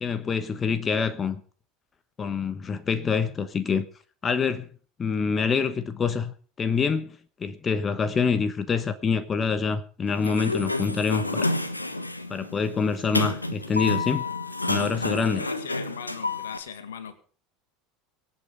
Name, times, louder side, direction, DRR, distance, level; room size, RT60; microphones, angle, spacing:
voice 1, 0.0-1.4 2.2-3.9 4.2-4.7 5.0-11.5 12.3-14.2 14.7-15.5, left 5 dB, 25° left, 1.2 m, -26 dB
Sliding door, 10.1-16.6, left 2 dB, 85° left, 1.1 m, -29 dB
voice 2, 15.3-17.2, left 7 dB, 70° left, 2.0 m, -39 dB
24.5 x 8.6 x 5.0 m
figure-of-eight pair, 75°, 0 cm